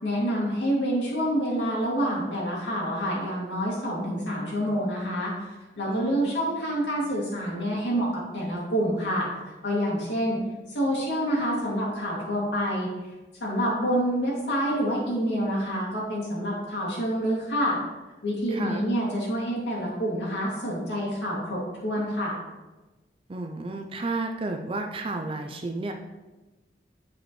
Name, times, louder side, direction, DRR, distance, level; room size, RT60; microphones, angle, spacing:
voice 1, 0.0-5.3 5.8-9.3 9.6-10.4 10.7-12.9 13.4-17.8 18.2-22.4, equal, 80° left, -5 dB, 2.3 m, -27 dB
voice 2, 5.9-6.4 18.5-18.8 23.3-25.9, right 2 dB, 30° right, 4 dB, 0.4 m, -32 dB
8.4 x 4.9 x 3.1 m, 1.1 s
head